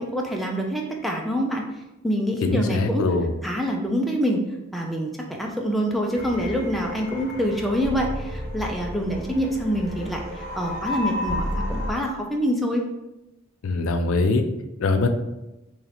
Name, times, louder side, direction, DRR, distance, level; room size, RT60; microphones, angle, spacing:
voice 1, 0.0-1.6 2.0-3.0 3.4-4.4 4.7-12.8, equal, ahead, 0 dB, 0.4 m, -26 dB
voice 2, 2.4-3.3 13.6-14.4 14.8-15.1, left 3 dB, 85° left, 6 dB, 0.4 m, -22 dB
sound 1, 6.1-11.9, left 1 dB, 45° right, 1.0 m, -32 dB
3.1 x 2.9 x 4.0 m, 0.96 s
head